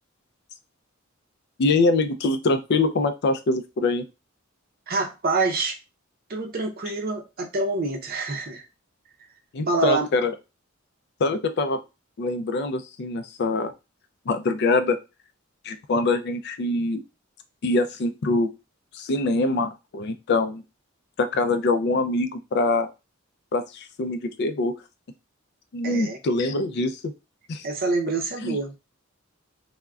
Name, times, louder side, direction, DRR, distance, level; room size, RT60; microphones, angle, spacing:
voice 1, 1.6-4.1 9.5-10.3 11.2-11.8 12.2-13.7 14.3-15.0 15.6-17.0 17.6-18.5 18.9-20.6 21.2-22.9 23.5-24.7 25.7-27.0 27.5-27.7 28.4-28.6, left 3 dB, 55° left, 9 dB, 0.4 m, -24 dB
voice 2, 4.9-5.8 6.3-8.6 9.7-10.1 25.8-26.2 27.6-28.7, right 3 dB, 45° right, 4 dB, 0.6 m, -26 dB
3.5 x 2.1 x 2.3 m, 0.27 s
head